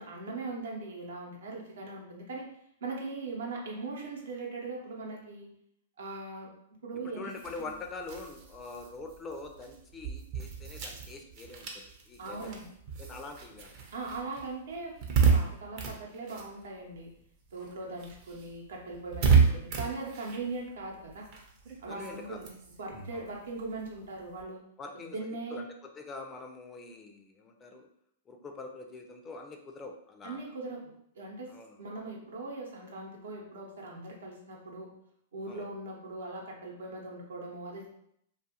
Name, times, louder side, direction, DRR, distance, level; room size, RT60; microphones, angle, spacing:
voice 1, 0.0-2.5 2.8-5.5 6.0-6.5 6.8-7.3 7.6-7.7 12.2-12.7 13.9-17.1 17.5-21.3 21.8-22.5 22.8-24.6 24.9-25.6 30.2-31.5 31.8-34.9 35.3-37.9, right 3 dB, 80° right, -1 dB, 0.8 m, -40 dB
voice 2, 7.2-12.5 13.0-13.7 21.9-22.4 23.1-23.3 24.8-25.2 25.5-25.7 26.0-27.9 28.3-30.5 31.5-31.8 35.5-35.6, left 3 dB, 20° left, 3 dB, 0.4 m, -44 dB
sound 1, 7.3-17.2 17.5-24.4, right 5 dB, 45° right, 0.6 m, -32 dB
2.5 x 2.3 x 2.8 m, 0.71 s
hypercardioid pair, 125°, 0 cm